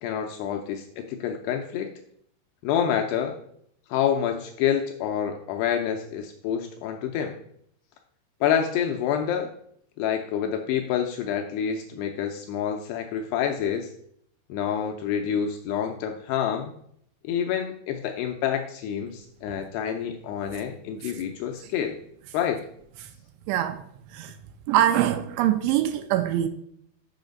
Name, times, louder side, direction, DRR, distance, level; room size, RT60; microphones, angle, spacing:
voice 1, 0.0-1.9 2.6-3.4 3.9-7.4 8.4-9.5 10.0-13.9 14.5-16.7 17.2-22.0 22.3-22.6, left 8 dB, 90° left, 2.3 m, -27 dB
voice 2, 23.5-23.8 24.1-24.3 24.7-26.5, right 12 dB, 85° right, 2.8 m, -23 dB
7.0 x 5.7 x 5.3 m
omnidirectional pair, 5.4 m